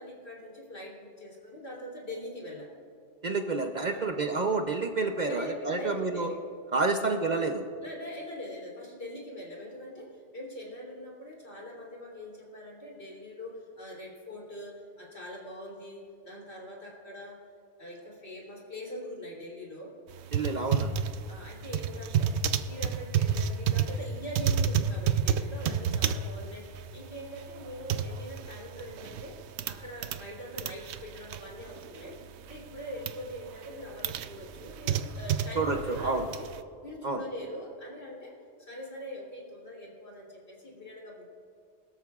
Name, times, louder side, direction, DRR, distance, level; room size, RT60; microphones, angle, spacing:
voice 1, 0.0-2.7 3.8-4.1 5.3-6.4 6.9-7.1 7.8-17.4 17.8-19.9 21.3-22.4 22.7-32.2 32.5-36.5 36.8-38.3 38.6-41.2, left 1 dB, 65° left, -3 dB, 3.5 m, -42 dB
voice 2, 3.2-6.3 6.7-7.7 20.3-21.0 35.6-36.3 37.0-37.2, right 3 dB, 45° right, 5 dB, 0.7 m, -29 dB
sound 1, 20.1-30.3 30.5-32.2 32.5-33.2 33.6-36.6, right 8 dB, 75° right, 0.9 m, -30 dB
22.0 x 13.0 x 2.4 m, 2.4 s
omnidirectional pair, 1.2 m